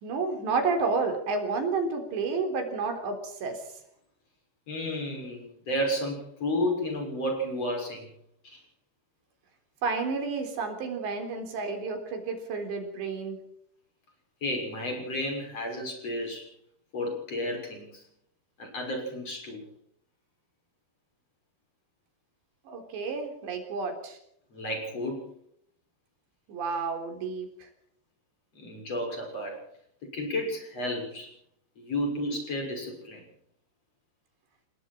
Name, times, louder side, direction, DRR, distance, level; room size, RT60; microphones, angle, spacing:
voice 1, 0.0-3.8 9.8-13.4 22.7-24.2 26.5-27.7, right 4 dB, 90° right, 4 dB, 6.0 m, -31 dB
voice 2, 4.7-8.1 8.4-8.6 14.4-16.5 16.9-18.0 18.6-19.6 24.5-25.3 28.6-29.6 30.1-31.3 31.8-33.2, left 1 dB, 35° left, 2 dB, 7.3 m, -32 dB
29.5 x 19.5 x 4.5 m, 0.70 s
omnidirectional pair, 4.9 m